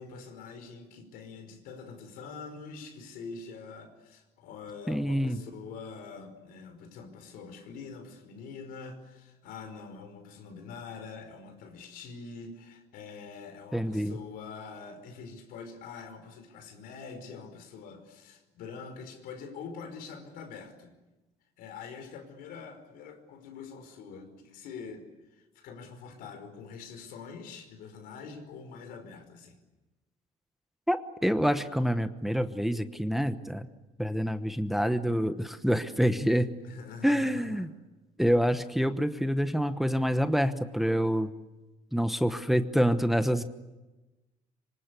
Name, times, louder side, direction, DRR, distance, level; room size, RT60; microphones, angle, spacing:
voice 1, 0.0-20.9 21.6-29.6 36.6-37.7, left 5 dB, 80° left, 7 dB, 5.2 m, -45 dB
voice 2, 4.9-5.4 13.7-14.2 30.9-33.7 34.0-36.5 37.0-37.7 38.2-41.3 41.9-43.4, equal, ahead, 9 dB, 1.1 m, -27 dB
26.0 x 25.5 x 8.4 m, 1.1 s
cardioid pair, 135°, 15 cm